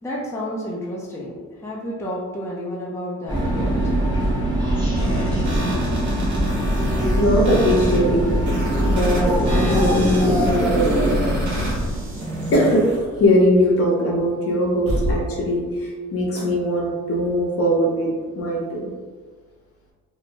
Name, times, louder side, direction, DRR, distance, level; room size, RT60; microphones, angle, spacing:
voice 1, 0.0-3.7, equal, 10° left, -5 dB, 0.5 m, -30 dB
sound 1, 3.3-12.2, right 1 dB, 15° right, 0.9 m, -22 dB
sound 2, 5.0-13.0, equal, 80° right, 0.8 m, -31 dB
voice 2, 7.2-8.3 8.9-11.1 12.5-12.9 13.2-18.9, equal, 50° left, -1 dB, 0.7 m, -20 dB
sound 3, 9.2-10.3 10.6-13.4 13.7-13.8 14.9-15.2 16.4-16.5, left 1 dB, 50° right, 1.0 m, -31 dB
2.7 x 2.0 x 2.9 m, 1.5 s
cardioid pair, 90°, 30 cm